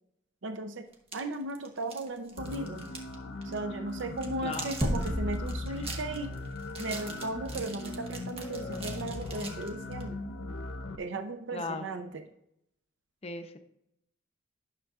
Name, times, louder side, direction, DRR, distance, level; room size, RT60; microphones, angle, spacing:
voice 1, 0.4-2.9 3.4-6.3 6.8-10.2 11.0-12.2, right 2 dB, 65° right, 7 dB, 0.6 m, -36 dB
sound 1, 0.9-3.2 3.4-3.6 4.0-10.1, right 4 dB, 30° right, 1.2 m, -44 dB
sound 2, 2.4-11.0, left 2 dB, 70° left, 0.7 m, -40 dB
sound 3, 4.8-7.4, equal, 15° right, 0.9 m, -33 dB
voice 2, 11.5-11.9 13.2-13.6, left 3 dB, 30° left, 6 dB, 0.6 m, -37 dB
11.5 x 6.7 x 2.4 m, 0.78 s
head